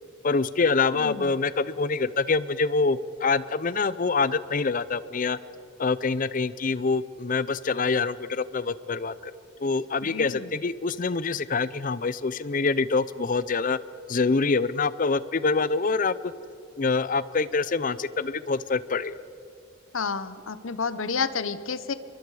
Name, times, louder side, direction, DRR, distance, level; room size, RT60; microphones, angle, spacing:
voice 1, 0.2-5.4 5.8-9.3 9.6-13.8 14.1-16.2 16.8-19.2, left 4 dB, 40° left, 17 dB, 0.5 m, -25 dB
voice 2, 0.9-1.3 10.0-10.5 19.9-21.9, left 5 dB, 70° left, 13 dB, 0.9 m, -30 dB
24.5 x 23.0 x 4.9 m, 2.6 s
head